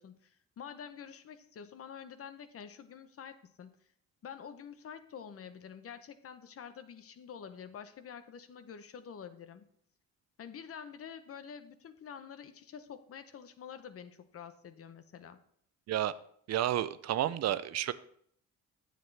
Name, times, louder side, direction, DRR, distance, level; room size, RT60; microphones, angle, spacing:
voice 1, 0.0-3.8 4.2-9.7 10.4-15.4, left 7 dB, 50° left, 12 dB, 0.8 m, -48 dB
voice 2, 16.5-17.9, right 12 dB, 60° right, 15 dB, 0.5 m, -31 dB
9.4 x 7.6 x 3.2 m, 0.64 s
cardioid pair, 90°, 30 cm